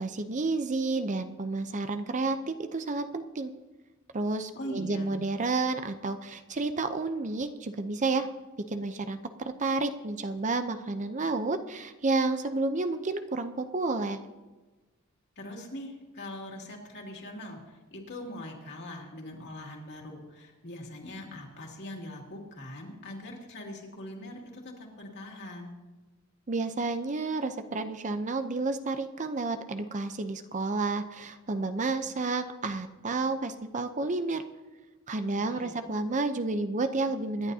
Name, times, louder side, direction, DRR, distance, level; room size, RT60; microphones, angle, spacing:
voice 1, 0.0-3.5 4.1-8.3 8.7-9.2 9.6-14.2 26.5-34.4 35.1-37.5, right 3 dB, 35° right, 8 dB, 0.6 m, -30 dB
voice 2, 4.5-5.2 15.4-25.7 35.3-35.8, left 1 dB, 55° left, 0 dB, 2.6 m, -42 dB
26.0 x 11.0 x 2.8 m, 1.2 s
head